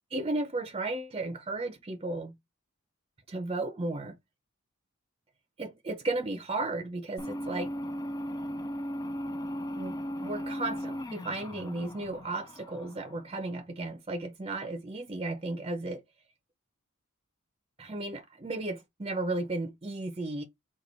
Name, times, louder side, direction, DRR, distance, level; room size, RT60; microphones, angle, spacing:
voice 1, 0.1-2.3 3.3-4.1 5.6-7.7 9.7-16.0 17.8-20.4, right 2 dB, 25° right, 0.7 m, -34 dB
sound 1, 7.2-13.5, equal, 15° left, 0.4 m, -37 dB
4.4 x 2.4 x 4.0 m
head